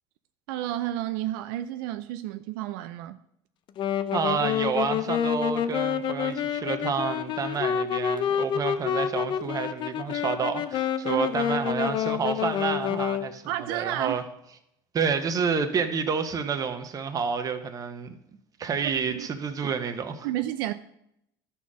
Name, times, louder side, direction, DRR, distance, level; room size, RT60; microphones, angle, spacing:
voice 1, 0.5-3.2 11.1-11.3 13.5-14.2 19.1-19.3 20.2-20.7, right 13 dB, 80° right, 0.5 m, -31 dB
Wind instrument woodwind instrument, 3.8-13.3, left 9 dB, 50° left, 0.6 m, -28 dB
voice 2, 4.1-13.4 13.7-14.2 14.9-18.1 18.6-20.3, right 6 dB, 35° right, 1.2 m, -29 dB
12.5 x 4.3 x 6.2 m
supercardioid pair, 110°, 11 cm